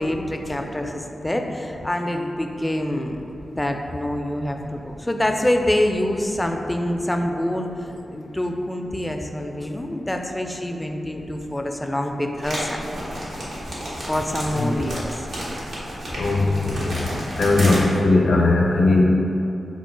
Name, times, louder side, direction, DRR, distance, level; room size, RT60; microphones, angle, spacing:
voice 1, 0.0-3.2 3.6-7.7 8.1-12.9 14.1-15.1, left 1 dB, 15° left, 3 dB, 0.3 m, -26 dB
sound 1, 12.4-17.8, equal, 85° right, 1.0 m, -31 dB
voice 2, 16.1-17.0 17.4-19.0, left 2 dB, 70° left, 0 dB, 0.5 m, -19 dB
3.6 x 2.4 x 4.5 m, 2.7 s
cardioid pair, 65°, 0 cm